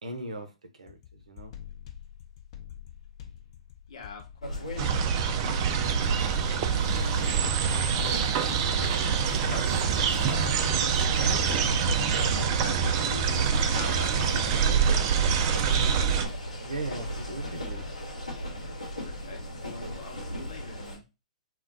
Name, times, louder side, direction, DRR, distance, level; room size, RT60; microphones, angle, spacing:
voice 1, 0.0-1.5 16.6-17.9, right 2 dB, 75° right, 0.7 m, -38 dB
sound 1, 0.9-11.5, left 10 dB, 50° left, 0.6 m, -46 dB
voice 2, 3.9-4.9 5.4-8.8 9.4-10.6 11.0-15.3 19.0-21.0, left 5 dB, 65° left, 0.9 m, -44 dB
sound 2, 4.4-21.0, equal, 90° left, 1.0 m, -36 dB
sound 3, 4.8-16.3, right 7 dB, 40° right, 0.4 m, -25 dB
2.3 x 2.2 x 3.9 m
figure-of-eight pair, 110°, 4 cm